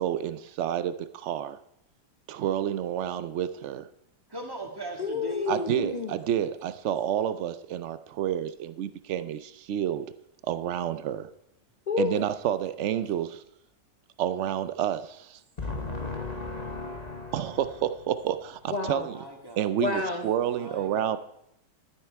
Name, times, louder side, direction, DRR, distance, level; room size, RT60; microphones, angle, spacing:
voice 1, 0.0-1.6 2.3-3.9 5.5-10.1 10.4-11.3 12.0-13.4 14.2-15.4 17.3-19.2 19.6-21.2, right 10 dB, 75° right, 13 dB, 0.6 m, -29 dB
voice 2, 4.3-5.5 19.0-19.7 20.4-21.2, right 1 dB, 15° right, 1 dB, 2.0 m, -39 dB
voice 3, 5.0-6.1 11.9-12.3 15.6-17.5 18.7-19.1 19.8-20.3, left 4 dB, 35° left, 4 dB, 0.7 m, -31 dB
13.0 x 10.5 x 4.6 m, 0.77 s
omnidirectional pair, 1.8 m